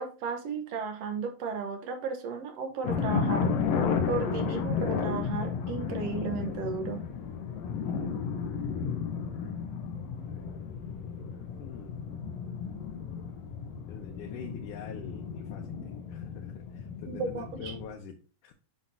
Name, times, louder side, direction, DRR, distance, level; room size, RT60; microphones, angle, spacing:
voice 1, 0.0-3.5 4.1-7.0 17.1-17.7, right 5 dB, 65° right, 6 dB, 1.7 m, -34 dB
sound 1, 2.8-17.9, left 6 dB, 65° left, 1.8 m, -33 dB
voice 2, 11.6-12.1 13.9-18.5, left 6 dB, 85° left, 1 dB, 2.4 m, -45 dB
7.3 x 5.9 x 2.6 m, 0.34 s
omnidirectional pair, 3.6 m